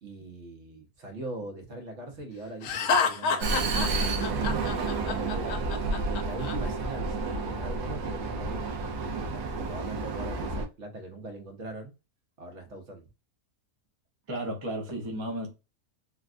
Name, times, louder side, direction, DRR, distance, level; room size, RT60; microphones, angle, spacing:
voice 1, 0.0-4.6 5.1-5.6 6.1-8.7 9.1-11.9 12.4-13.1, right 2 dB, 55° right, 1.1 m, -41 dB
Laughter, 2.6-6.6, left 5 dB, 70° left, 1.0 m, -28 dB
Vehicle, 3.4-10.7, right 3 dB, 80° right, 1.1 m, -30 dB
voice 2, 14.3-15.5, right 1 dB, 35° right, 0.4 m, -33 dB
3.4 x 2.3 x 2.4 m
omnidirectional pair, 1.6 m